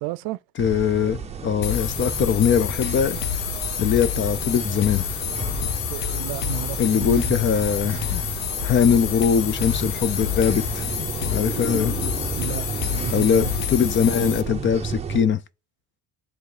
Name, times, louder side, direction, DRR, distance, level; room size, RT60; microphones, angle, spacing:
voice 1, 0.0-0.4 5.9-7.3 12.4-13.5, right 17 dB, 65° right, 0.5 m, -32 dB
voice 2, 0.6-3.2 3.8-5.0 6.8-8.2 8.6-11.9 13.1-15.4, left 7 dB, 30° left, 0.5 m, -22 dB
sound 1, 0.6-15.2, right 6 dB, 15° right, 0.7 m, -32 dB
sound 2, 1.6-14.4, left 12 dB, 85° left, 0.9 m, -28 dB
9.4 x 3.5 x 4.9 m
cardioid pair, 140°, 38 cm